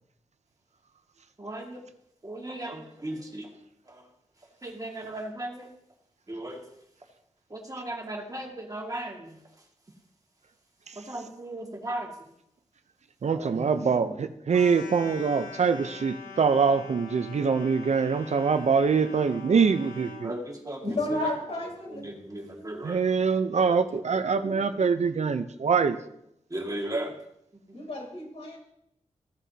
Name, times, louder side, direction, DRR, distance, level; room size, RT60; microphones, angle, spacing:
voice 1, 1.4-1.8 2.2-3.5 3.9-4.0 4.6-5.7 6.3-6.6 7.5-9.4 11.0-12.1 13.3-13.9 20.2-20.8 22.0-23.0 23.7-24.6 25.8-25.9 26.5-27.1 27.7-27.8, right 1 dB, 30° right, 1 dB, 2.0 m, -36 dB
voice 2, 13.2-20.3 22.8-26.0, right 5 dB, 65° right, 10 dB, 0.6 m, -24 dB
sound 1, 14.5-20.3, left 4 dB, 85° left, 2.1 m, -43 dB
voice 3, 20.8-22.0 27.7-28.6, left 1 dB, 55° left, -2 dB, 4.2 m, -31 dB
15.5 x 7.3 x 2.8 m, 0.77 s
cardioid pair, 60°, 13 cm